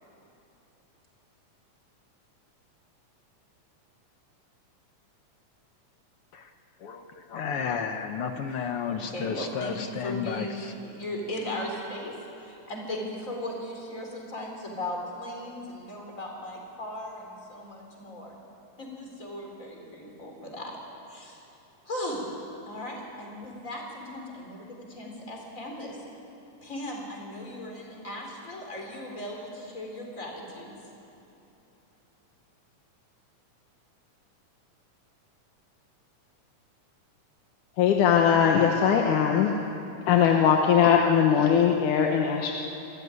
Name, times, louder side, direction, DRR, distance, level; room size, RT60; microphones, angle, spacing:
voice 1, 6.8-10.7, left 6 dB, 65° left, 6 dB, 1.5 m, -32 dB
voice 2, 8.9-18.4 18.8-20.8 21.1-21.4 21.9-22.3 22.6-26.0 26.6-30.8, left 1 dB, 25° left, 1 dB, 4.0 m, -37 dB
voice 3, 37.8-39.5 40.1-42.5, left 8 dB, 85° left, 1 dB, 2.6 m, -20 dB
26.5 x 14.0 x 9.6 m, 3.0 s
omnidirectional pair, 3.5 m